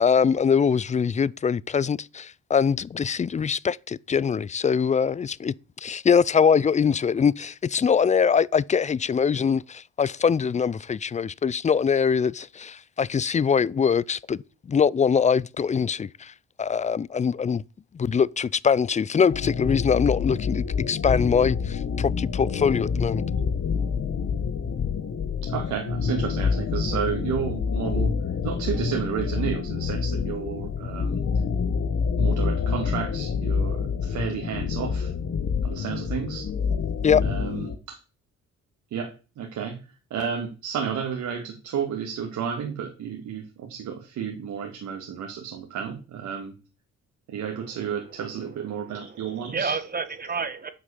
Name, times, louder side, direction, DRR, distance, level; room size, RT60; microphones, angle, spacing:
voice 1, 0.0-5.5 5.8-14.4 14.7-16.3 16.6-17.6 17.9-23.2 37.0-37.2, left 6 dB, 25° left, 0.4 m, -23 dB
sound 1, 19.3-37.8, left 5 dB, 50° left, 1.4 m, -27 dB
voice 2, 25.4-28.1 28.4-31.2 32.2-35.1 35.6-36.5 37.2-38.0 38.9-39.8 40.1-46.5 47.3-49.8, right 7 dB, 75° right, 2.2 m, -32 dB
voice 3, 48.7-50.7, right 5 dB, 30° right, 1.5 m, -31 dB
9.7 x 6.3 x 7.0 m
cardioid pair, 90°, 30 cm